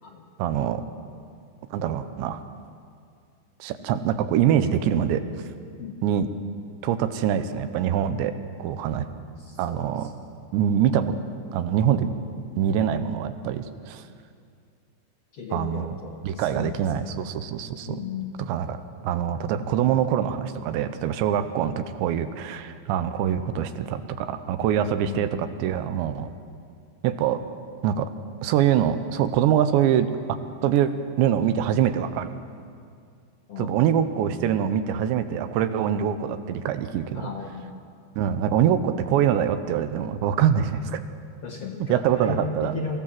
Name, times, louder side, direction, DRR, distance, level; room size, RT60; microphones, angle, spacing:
voice 1, 0.4-0.8 1.7-2.4 3.6-5.2 6.0-6.3 6.8-8.3 8.6-9.1 9.6-10.1 10.5-11.2 11.5-12.1 12.6-14.0 15.5-16.0 16.2-18.0 18.5-26.3 27.0-27.4 27.8-28.1 28.4-30.1 30.6-30.9 31.2-32.3 33.6-37.3 38.2-41.0 41.9-42.7, right 9 dB, 85° right, 10 dB, 3.1 m, -24 dB
voice 2, 9.4-10.1 15.3-17.1 17.9-18.4 25.0-25.3 33.5-33.8 37.1-37.7 41.4-43.0, left 4 dB, 75° left, 0 dB, 1.4 m, -35 dB
23.5 x 15.0 x 7.5 m, 2.3 s
omnidirectional pair, 5.0 m